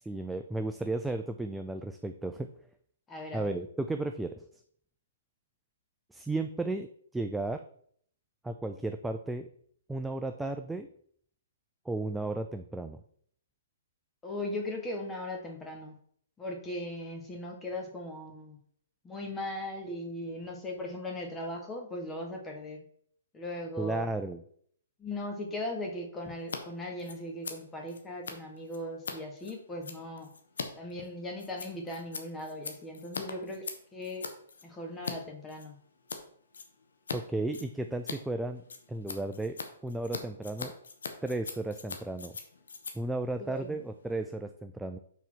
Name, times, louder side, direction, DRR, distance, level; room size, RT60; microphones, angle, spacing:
voice 1, 0.0-2.5 3.3-4.4 6.1-6.9 7.1-7.6 8.4-9.5 9.9-10.9 11.9-13.0 23.8-24.4 37.1-38.6 38.9-40.7 41.2-42.4 42.9-45.0, right 2 dB, 5° right, 6 dB, 0.3 m, -34 dB
voice 2, 3.1-3.5 14.2-15.9 16.4-18.6 19.0-22.8 23.3-24.0 25.0-30.3 30.7-33.7 33.9-34.3 34.6-35.7 43.4-43.8, left 1 dB, 10° left, 2 dB, 1.4 m, -38 dB
Scissors, 26.4-26.6 26.9-35.2 35.5-36.2 36.5-37.2 37.4-44.2, left 4 dB, 90° left, 1.2 m, -42 dB
6.1 x 4.1 x 6.2 m, 0.62 s
hypercardioid pair, 155°, 0 cm